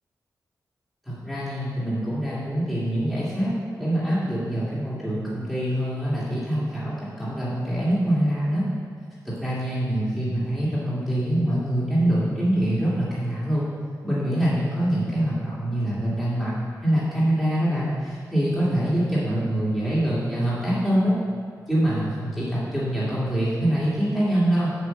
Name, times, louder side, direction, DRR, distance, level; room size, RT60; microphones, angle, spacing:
voice 1, 1.1-8.7 9.2-13.7 14.0-16.5 16.8-21.1 21.7-24.7, right 1 dB, ahead, -10 dB, 2.2 m, -24 dB
8.1 x 5.0 x 7.5 m, 2.2 s
wide cardioid pair, 120°, 7 cm